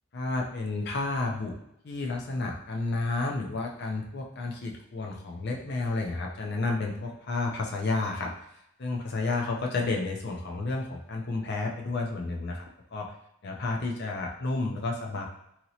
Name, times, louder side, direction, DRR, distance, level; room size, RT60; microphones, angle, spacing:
voice 1, 0.1-1.6 1.8-8.3 8.8-13.1 13.4-15.3, left 3 dB, 50° left, 1 dB, 0.5 m, -31 dB
2.9 x 2.8 x 2.7 m, 0.81 s
head